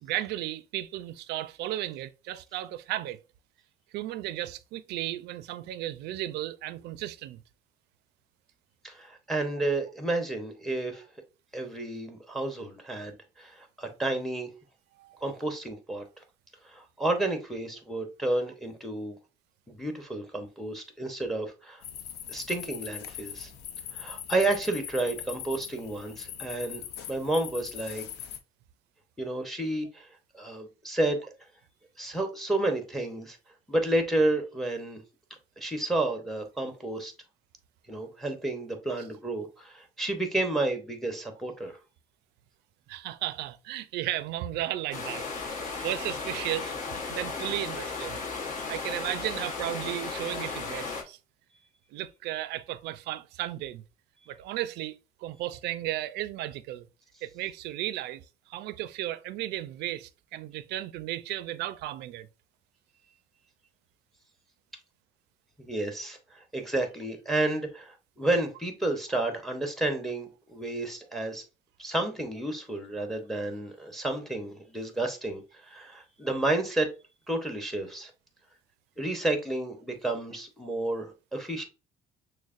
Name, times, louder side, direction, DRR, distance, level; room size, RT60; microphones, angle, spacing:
voice 1, 0.0-3.2 3.9-7.4 15.0-15.2 42.9-46.7 47.1-48.2 48.7-51.2 51.9-53.8 54.3-54.9 55.2-56.9 57.2-58.2 58.5-62.3, right 14 dB, 80° right, 0.4 m, -34 dB
voice 2, 8.8-11.0 11.5-14.5 15.2-16.0 16.6-19.1 19.7-21.8 22.3-23.5 23.9-28.0 29.2-30.1 30.3-31.3 32.0-33.4 33.7-35.0 35.6-37.1 37.9-41.8 65.6-71.4 71.8-76.9 77.3-78.1 79.0-81.6, right 2 dB, ahead, 0.8 m, -31 dB
sound 1, 21.8-28.4, left 9 dB, 75° left, 0.5 m, -41 dB
sound 2, 44.9-51.0, left 4 dB, 50° left, 1.0 m, -35 dB
6.2 x 2.1 x 2.5 m
cardioid pair, 110°, 17 cm